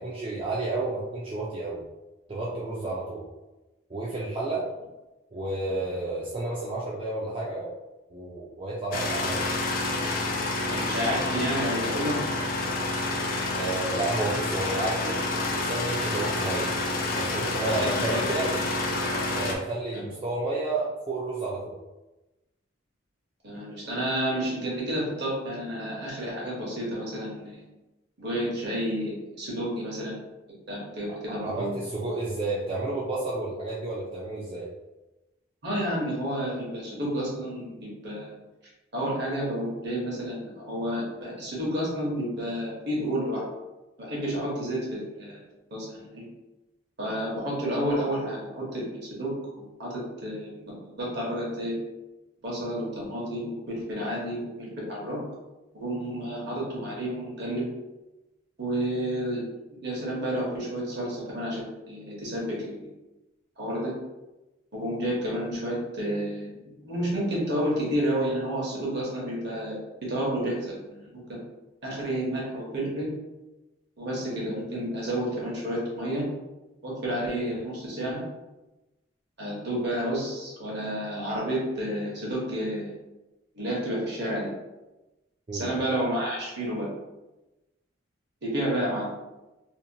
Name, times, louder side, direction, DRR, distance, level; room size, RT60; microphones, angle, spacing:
voice 1, 0.0-1.9 2.3-3.3 3.9-4.7 5.3-7.7 8.1-9.7 13.5-16.7 17.1-18.5 19.4-21.7 31.3-34.7 85.5-85.8, right 2 dB, 25° right, -6 dB, 0.3 m, -31 dB
sound 1, 8.9-19.6, left 2 dB, 45° left, 0.4 m, -28 dB
voice 2, 10.7-12.2 17.6-18.2 18.5-18.6 23.4-27.6 28.2-30.2 30.7-31.8 35.6-38.3 38.9-43.4 44.0-45.4 45.7-46.2 47.0-49.4 49.8-51.7 52.4-55.2 55.7-57.7 58.6-59.4 59.8-62.9 63.6-63.9 64.7-66.5 66.8-69.8 70.1-71.4 71.8-73.1 74.0-76.3 76.8-78.2 79.4-82.9 83.5-84.5 85.5-86.9 88.4-89.1, equal, 55° right, -4 dB, 1.0 m, -30 dB
2.7 x 2.1 x 2.7 m, 1.0 s
head